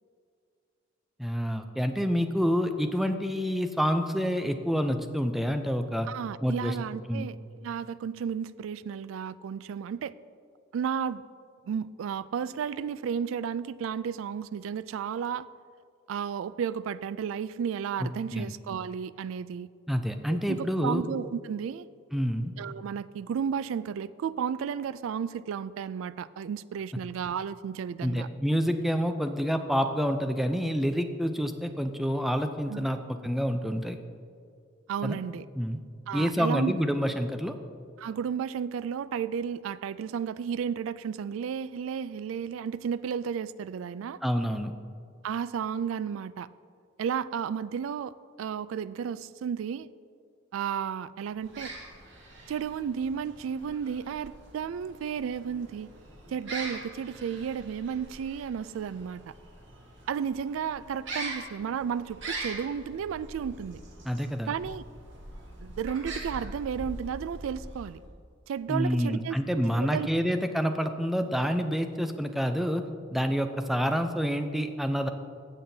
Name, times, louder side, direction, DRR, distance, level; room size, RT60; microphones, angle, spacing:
voice 1, 1.2-6.1 6.4-6.8 7.1-7.3 18.0-18.5 19.9-21.0 22.1-22.5 28.0-34.0 35.0-35.2 35.6-35.8 36.1-37.6 44.2-44.7 64.0-64.5 68.7-72.8 73.1-75.1, equal, ahead, 7 dB, 0.4 m, -28 dB
voice 2, 6.1-7.4 7.6-10.1 10.7-11.2 11.7-15.5 16.1-19.7 20.3-21.9 22.6-28.3 32.7-32.8 34.9-35.5 36.1-36.7 38.0-44.2 45.2-46.5 47.0-49.9 50.5-51.7 52.5-55.9 56.3-59.3 60.1-63.8 64.5-64.8 65.6-68.0 68.5-70.1, right 7 dB, 80° right, 18 dB, 0.3 m, -33 dB
sound 1, 51.3-68.1, right 2 dB, 65° right, 1.7 m, -43 dB
15.5 x 7.6 x 2.7 m, 2.2 s
head